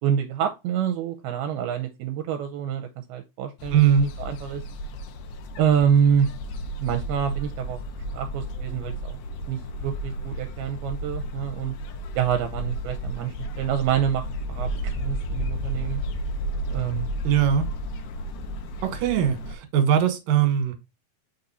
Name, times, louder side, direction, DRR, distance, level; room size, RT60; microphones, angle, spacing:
voice 1, 0.0-4.6 5.6-6.3 6.8-7.8 8.1-9.2 9.5-11.7 12.2-14.7 15.0-16.0 16.7-17.1, right 8 dB, 80° right, 2.6 m, -26 dB
sound 1, 3.6-19.6, equal, 75° left, 1.9 m, -33 dB
voice 2, 3.7-4.1 17.2-17.6 18.8-20.8, right 9 dB, 65° right, 2.8 m, -20 dB
6.0 x 4.0 x 4.1 m
omnidirectional pair, 4.5 m